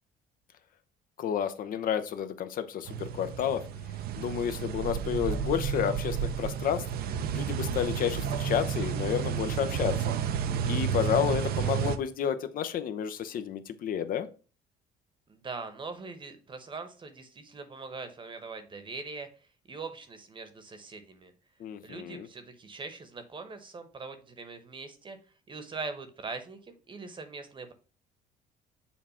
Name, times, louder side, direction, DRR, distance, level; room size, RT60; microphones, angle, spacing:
voice 1, 1.2-3.6 4.2-6.8 7.3-10.0 10.6-14.3 21.6-22.3, left 9 dB, 55° left, 10 dB, 0.6 m, -30 dB
sound 1, 2.9-12.0, right 8 dB, 65° right, 0.6 m, -31 dB
voice 2, 15.3-19.3 19.7-21.3 21.8-25.2 25.5-27.7, right 4 dB, 30° right, 9 dB, 1.0 m, -42 dB
7.1 x 2.4 x 5.5 m, 0.37 s
cardioid pair, 110°, 17 cm